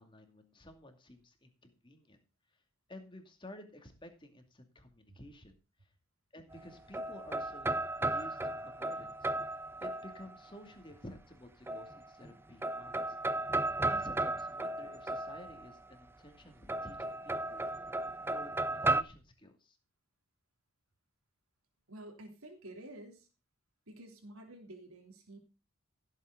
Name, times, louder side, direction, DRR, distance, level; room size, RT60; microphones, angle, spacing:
voice 1, 0.0-2.2 2.9-5.6 6.3-9.3 9.8-13.2 13.8-17.7 18.3-19.8, left 1 dB, 25° left, 5 dB, 2.5 m, -52 dB
sound 1, 6.5-10.5 11.7-12.3 12.6-15.8 16.7-19.0, right 2 dB, 10° right, 0.5 m, -35 dB
voice 2, 21.9-23.3 23.9-25.4, right 1 dB, 85° right, 3 dB, 3.3 m, -50 dB
16.0 x 7.8 x 3.9 m, 0.31 s
head